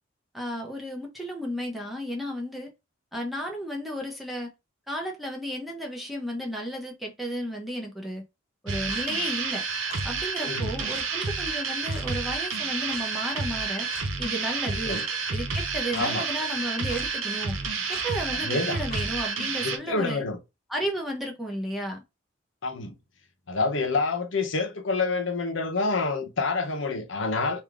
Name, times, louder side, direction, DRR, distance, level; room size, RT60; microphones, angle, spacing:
voice 1, 0.3-2.7 3.1-4.5 4.9-8.2 8.6-9.6 10.0-13.9 14.2-15.0 15.3-17.6 17.9-20.2 20.7-22.0, equal, ahead, 0.9 m, -33 dB
sound 1, 8.7-19.8, right 4 dB, 85° right, 0.9 m, -30 dB
Clock, 8.9-9.1 9.9-10.0 10.9-11.0 11.9-12.1 12.9-13.1 13.9-14.1 14.9-15.0 15.9-16.1 16.9-17.1 17.9-18.1 18.9-19.1, left 4 dB, 50° left, 1.0 m, -42 dB
voice 2, 15.9-16.2 18.3-18.8 19.6-20.4 22.6-22.9 23.5-27.6, left 3 dB, 75° left, 0.9 m, -27 dB
3.5 x 2.7 x 3.7 m
head